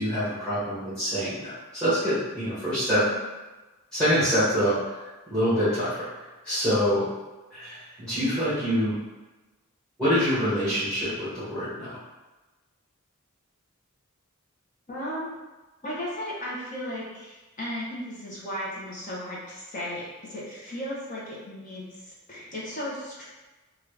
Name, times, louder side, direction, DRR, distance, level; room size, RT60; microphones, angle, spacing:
voice 1, 0.0-3.0 3.9-5.0 5.3-6.0 6.4-7.1 7.5-9.0 10.0-11.9, equal, 5° left, -15 dB, 1.2 m, -25 dB
voice 2, 14.9-15.4 15.8-23.2, equal, 35° left, -7 dB, 0.9 m, -35 dB
3.0 x 2.5 x 3.2 m, 1.2 s
head